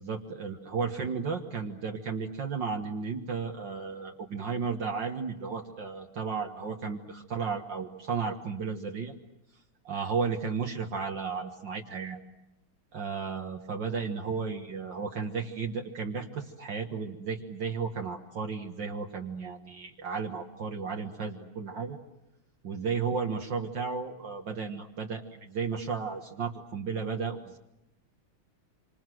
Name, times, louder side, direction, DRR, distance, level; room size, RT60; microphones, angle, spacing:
voice 1, 0.0-9.1 9.8-12.2 12.9-22.0 22.6-27.6, right 5 dB, 60° right, 3 dB, 2.2 m, -34 dB
27.0 x 26.0 x 7.8 m, 0.90 s
omnidirectional pair, 2.3 m